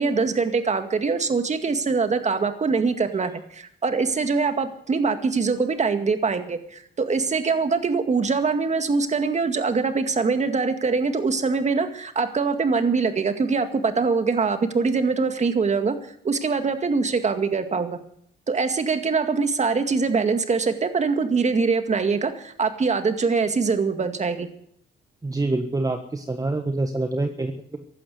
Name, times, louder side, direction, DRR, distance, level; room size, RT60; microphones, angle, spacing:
voice 1, 0.0-16.0 16.2-18.0 18.5-24.5, right 4 dB, 35° right, 8 dB, 2.1 m, -23 dB
voice 2, 25.2-27.8, right 2 dB, 20° right, 6 dB, 1.4 m, -26 dB
15.5 x 11.5 x 8.0 m, 0.64 s
cardioid pair, 90°, 20 cm